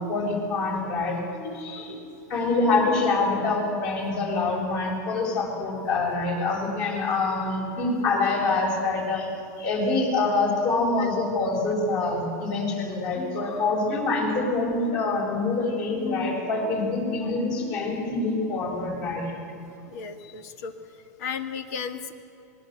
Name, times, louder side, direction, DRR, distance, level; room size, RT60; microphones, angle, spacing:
voice 1, 0.0-2.0 2.3-9.3 9.6-19.3, left 3 dB, 45° left, 0 dB, 7.6 m, -25 dB
voice 2, 19.9-20.7 21.2-22.1, left 7 dB, 65° left, 8 dB, 2.1 m, -33 dB
26.5 x 20.5 x 8.1 m, 2.7 s
supercardioid pair, 135°, 9 cm